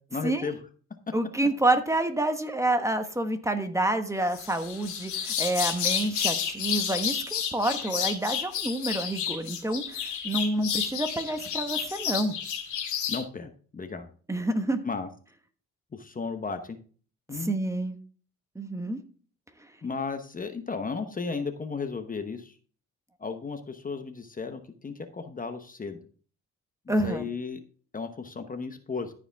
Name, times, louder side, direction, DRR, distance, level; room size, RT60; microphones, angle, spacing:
voice 1, 0.1-0.6 13.1-14.1 14.8-15.1 15.9-16.8 17.3-17.5 19.8-22.5 23.2-26.0 26.9-27.6 27.9-29.1, left 4 dB, 30° left, 8 dB, 1.0 m, -34 dB
voice 2, 1.1-12.4 14.3-14.8 17.3-18.0 18.5-19.0 26.9-27.3, right 1 dB, 10° right, 7 dB, 1.2 m, -28 dB
sound 1, 4.3-13.2, left 8 dB, 75° left, 2.2 m, -31 dB
14.0 x 5.0 x 3.5 m, 0.41 s
cardioid pair, 90°, 30 cm